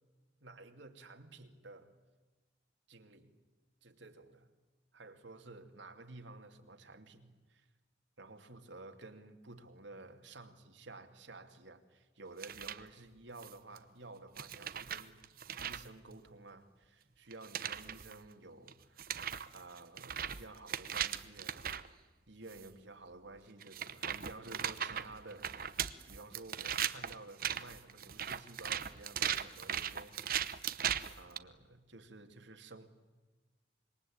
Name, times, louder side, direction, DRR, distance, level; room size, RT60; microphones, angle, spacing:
voice 1, 0.4-2.0 2.9-3.4 3.8-4.5 4.9-7.7 8.2-19.1 19.5-21.7 22.3-25.8 26.1-30.2 30.7-32.9, right 2 dB, 85° right, 2.7 m, -53 dB
sound 1, 12.4-12.8 13.4-13.8 14.4-15.9 17.3-18.1 18.7-18.8 19.0-21.9 22.5-22.7 23.6-31.4, right 9 dB, 50° right, 0.9 m, -38 dB
26.5 x 23.0 x 8.8 m
head